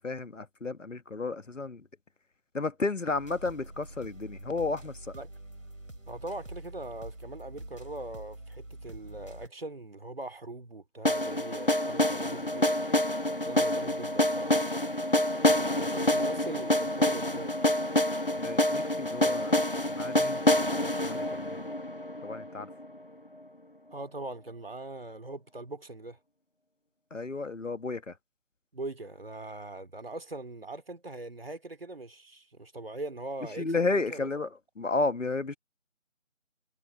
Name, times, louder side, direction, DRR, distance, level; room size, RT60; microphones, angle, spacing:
voice 1, 0.0-1.9 2.5-5.1 18.4-21.6 22.2-22.7 27.1-28.1 33.6-34.5 34.8-35.6, left 3 dB, 70° left, 1.4 m, -33 dB
sound 1, 3.1-9.5, right 1 dB, 85° right, 7.5 m, -45 dB
voice 2, 6.1-12.8 13.4-14.6 15.5-17.6 23.9-26.2 28.7-34.3, right 2 dB, 45° right, 3.0 m, -41 dB
sound 2, 11.0-23.0, left 1 dB, 45° left, 0.4 m, -27 dB
figure-of-eight pair, 170°, 39 cm